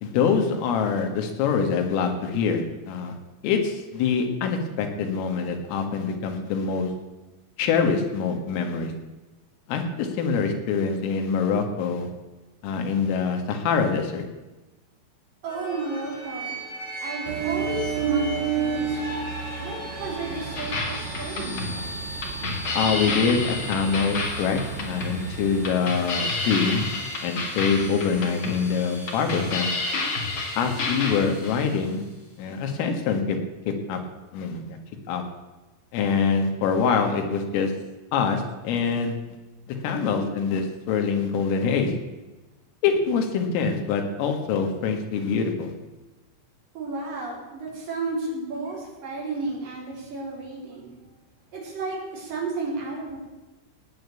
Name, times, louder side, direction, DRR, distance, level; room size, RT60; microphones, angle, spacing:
voice 1, 0.0-3.2 3.4-6.9 7.6-8.9 9.7-12.1 12.6-14.2 22.7-24.6 24.9-26.8 27.2-29.7 30.6-32.1 32.4-33.4 33.7-34.0 34.3-34.8 35.1-35.2 35.9-37.7 38.1-39.2 39.7-41.9 42.8-45.7, left 5 dB, 80° left, 4 dB, 4.4 m, -25 dB
voice 2, 15.4-16.6 17.0-19.2 19.6-22.0 40.1-40.3 46.7-50.9 51.5-53.2, right 3 dB, 45° right, -3 dB, 5.8 m, -33 dB
sound 1, 15.5-32.2, equal, 20° left, 2.6 m, -39 dB
Ocean, 17.3-25.8, right 7 dB, 85° right, 3.6 m, -32 dB
sound 2, 20.5-31.6, left 3 dB, 40° left, 1.9 m, -30 dB
18.0 x 9.1 x 8.4 m, 1.1 s
omnidirectional pair, 5.8 m